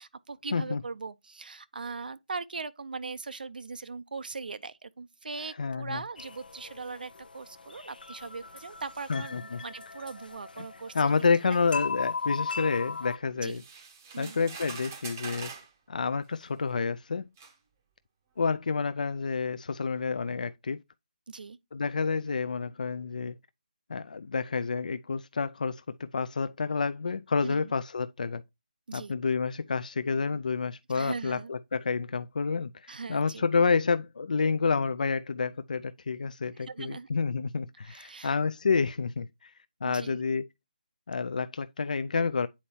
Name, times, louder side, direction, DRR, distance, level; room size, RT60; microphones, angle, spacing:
voice 1, 0.0-11.1 11.4-11.6 13.4-13.6 14.1-14.4 21.3-21.6 27.4-27.7 28.9-29.1 30.9-31.5 32.9-33.4 36.5-37.1 37.8-38.4 39.8-40.2, right 4 dB, 75° right, 0.4 m, -40 dB
voice 2, 5.6-6.0 9.1-9.6 10.6-10.7 10.9-13.6 14.2-15.5 15.9-17.2 18.4-20.8 21.7-23.4 23.9-28.4 28.9-39.5 39.8-40.5 41.1-42.5, left 5 dB, 60° left, 0.3 m, -29 dB
sound 1, 6.2-13.2, left 5 dB, 80° left, 0.7 m, -38 dB
sound 2, 13.5-15.7 16.7-16.8 17.4-17.6, right 5 dB, 20° right, 0.6 m, -43 dB
8.4 x 4.3 x 2.7 m
hypercardioid pair, 175°, 5 cm